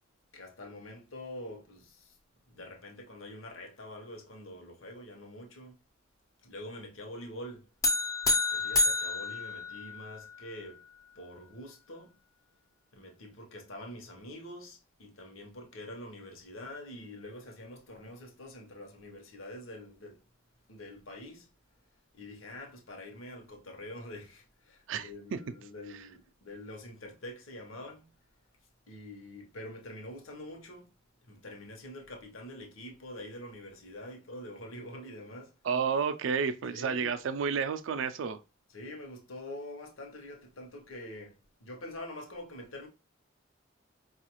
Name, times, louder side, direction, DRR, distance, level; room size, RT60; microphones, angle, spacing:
voice 1, 0.3-2.2 2.5-5.8 6.4-7.7 8.5-10.8 11.1-12.1 12.9-20.2 20.7-21.5 22.1-28.1 28.9-30.9 31.2-35.5 36.7-37.1 38.7-42.9, left 1 dB, 75° left, 0.9 m, -45 dB
sound 1, 7.8-10.3, left 2 dB, 15° left, 0.4 m, -29 dB
voice 2, 35.6-38.4, right 6 dB, 65° right, 0.3 m, -30 dB
4.6 x 2.4 x 2.9 m
head